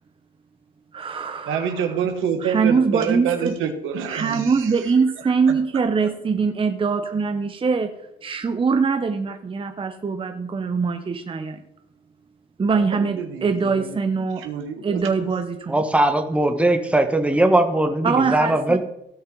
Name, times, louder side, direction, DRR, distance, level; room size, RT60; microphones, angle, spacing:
voice 1, 0.9-1.7 2.4-3.5 4.1-7.9 8.2-11.6 12.6-14.4 14.8-15.8 18.0-18.8, right 5 dB, 25° right, 6 dB, 0.8 m, -22 dB
voice 2, 1.5-4.7 5.2-5.6 12.7-14.0 14.4-15.0, right 7 dB, 85° right, 6 dB, 1.4 m, -27 dB
voice 3, 15.7-18.8, right 1 dB, 5° right, 5 dB, 1.2 m, -19 dB
16.0 x 5.5 x 3.9 m, 0.83 s
cardioid pair, 90°, 20 cm